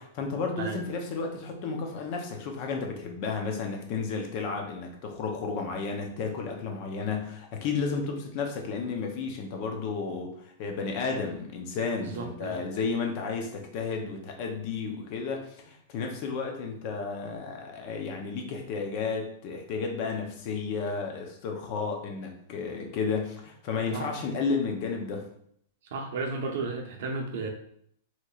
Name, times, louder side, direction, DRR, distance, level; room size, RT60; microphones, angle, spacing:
voice 1, 0.0-25.2, left 4 dB, 35° left, 2 dB, 0.7 m, -32 dB
voice 2, 12.0-12.6 23.9-24.0 25.9-27.5, right 3 dB, 55° right, 2 dB, 0.7 m, -33 dB
4.2 x 3.1 x 2.4 m, 0.67 s
supercardioid pair, 170°, 0 cm